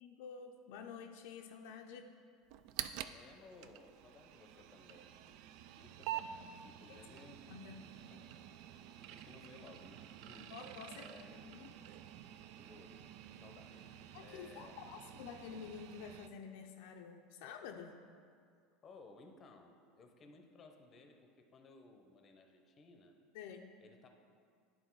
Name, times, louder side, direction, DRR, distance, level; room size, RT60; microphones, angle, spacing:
voice 1, 0.0-2.1 6.9-7.0 7.5-7.9 10.4-11.7 14.1-18.0 23.3-23.7, left 6 dB, 75° left, 3 dB, 0.5 m, -50 dB
sound 1, 2.5-16.3, right 11 dB, 60° right, 0.3 m, -49 dB
voice 2, 3.1-7.6 8.1-8.3 9.1-10.5 10.9-11.4 12.6-13.1 13.4-14.8 18.8-23.2 23.8-24.1, left 3 dB, 30° left, 5 dB, 0.7 m, -59 dB
10.0 x 3.7 x 4.6 m, 2.1 s
supercardioid pair, 130°, 0 cm